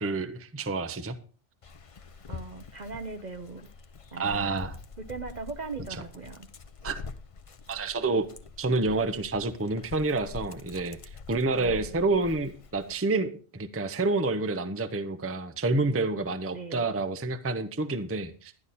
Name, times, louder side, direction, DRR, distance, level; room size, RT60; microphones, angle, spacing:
voice 1, 0.0-1.2 4.2-4.8 6.8-7.0 7.7-8.3 8.6-11.0 11.3-18.5, right 3 dB, 15° right, 10 dB, 0.6 m, -28 dB
Dog, 1.6-13.0, left 5 dB, 35° left, 0.6 m, -45 dB
voice 2, 2.3-3.7 4.1-4.6 5.0-6.5 11.6-12.0 16.5-16.9, right 4 dB, 45° right, 9 dB, 0.8 m, -39 dB
11.5 x 11.0 x 4.2 m, 0.38 s
omnidirectional pair, 1.2 m